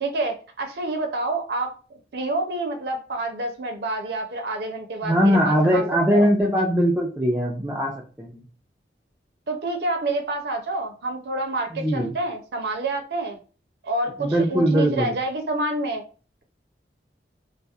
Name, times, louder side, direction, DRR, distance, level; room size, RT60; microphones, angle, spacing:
voice 1, 0.0-1.7 2.1-5.8 6.1-6.3 9.5-13.4 13.8-16.0, right 2 dB, 70° right, 4 dB, 0.4 m, -28 dB
voice 2, 5.0-7.9 8.2-8.4 11.7-12.1 14.2-15.1, equal, 10° right, -3 dB, 0.3 m, -20 dB
2.7 x 2.0 x 2.2 m, 0.37 s
head